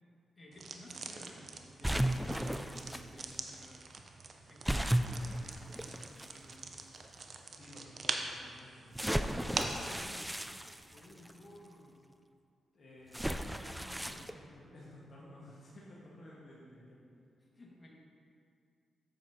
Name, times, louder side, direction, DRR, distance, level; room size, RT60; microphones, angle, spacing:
voice 1, 0.4-3.9 4.5-6.8 9.3-12.0 13.8-14.4 17.1-17.3 17.5-17.9, left 1 dB, 35° left, -4 dB, 1.7 m, -55 dB
sound 1, 0.5-9.9, right 4 dB, 55° right, 0.6 m, -43 dB
sound 2, 1.8-3.0 4.6-6.3 7.0-7.1 8.9-11.3 13.1-14.3, right 1 dB, 5° right, 0.4 m, -34 dB
voice 2, 7.5-8.9 12.7-17.0, left 1 dB, 55° left, -6 dB, 1.4 m, -54 dB
7.9 x 7.5 x 2.8 m, 2.3 s
supercardioid pair, 55°, 0 cm